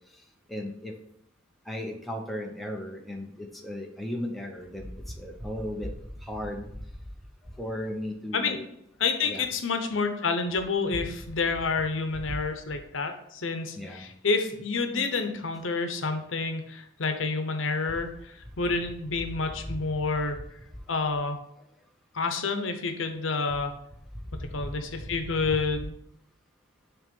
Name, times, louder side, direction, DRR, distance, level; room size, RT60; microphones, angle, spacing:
voice 1, 0.5-0.9 1.7-4.9 5.2-5.9 6.2-6.6 7.6-8.6 9.2-9.4 13.8-14.0, left 1 dB, ahead, 1 dB, 0.8 m, -35 dB
voice 2, 9.0-20.4 20.9-21.4 22.1-23.7 24.4-25.9, left 4 dB, 80° left, 7 dB, 0.8 m, -29 dB
6.1 x 3.3 x 5.3 m, 0.74 s
head